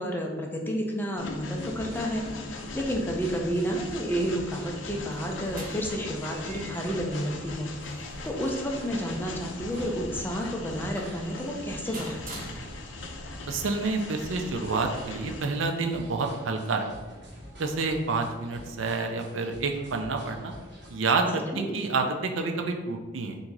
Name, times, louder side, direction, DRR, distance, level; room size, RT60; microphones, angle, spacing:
voice 1, 0.0-2.3 2.7-7.7 8.2-12.3 21.5-21.8, equal, 10° left, 0 dB, 0.5 m, -30 dB
Train, 1.2-15.4, left 3 dB, 70° left, 0.5 m, -40 dB
sound 1, 1.5-21.1, equal, 60° right, 1.4 m, -47 dB
sound 2, 4.8-13.2, right 1 dB, 45° right, 0.9 m, -47 dB
voice 2, 13.4-16.8 17.6-20.5 20.9-23.4, right 3 dB, 80° right, 4 dB, 0.5 m, -28 dB
3.6 x 2.7 x 4.5 m, 1.3 s
head